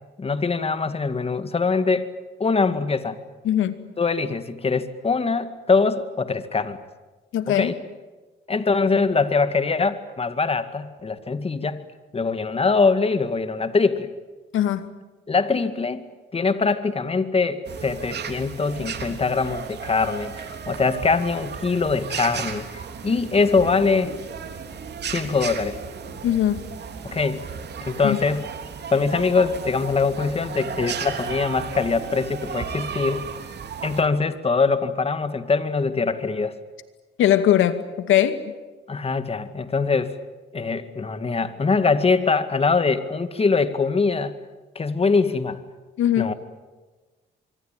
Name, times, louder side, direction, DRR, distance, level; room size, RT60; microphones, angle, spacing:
voice 1, 0.2-2.1 2.4-3.2 4.0-6.8 7.5-7.7 8.5-11.8 12.1-14.1 15.3-16.0 16.3-24.1 25.1-25.8 27.0-27.4 27.8-28.5 28.9-33.3 33.8-36.6 38.9-40.1 40.5-44.3 44.8-45.6 46.2-46.3, left 4 dB, 30° left, 11 dB, 2.1 m, -23 dB
voice 2, 3.4-3.8 7.3-7.7 14.5-14.9 26.2-26.6 28.0-28.2 37.2-38.4 46.0-46.3, left 11 dB, 80° left, 10 dB, 2.3 m, -20 dB
sound 1, 17.7-34.0, right 6 dB, 60° right, 3.5 m, -34 dB
25.0 x 24.5 x 9.2 m, 1.3 s
cardioid pair, 90°, 20 cm